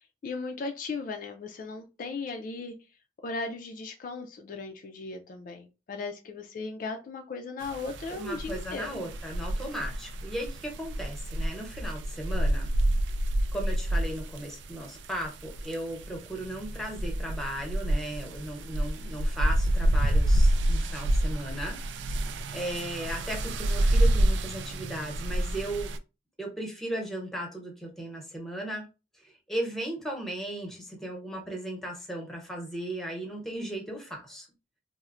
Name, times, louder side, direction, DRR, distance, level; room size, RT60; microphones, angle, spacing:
voice 1, 0.2-2.8 3.2-9.1, left 3 dB, 50° left, 0.3 m, -37 dB
sound 1, 7.6-26.0, right 1 dB, 85° right, 0.3 m, -28 dB
voice 2, 8.1-12.7 13.5-21.8 22.1-26.0 26.4-28.9 29.2-34.5, right 1 dB, ahead, 0.8 m, -36 dB
4.2 x 2.0 x 2.4 m
head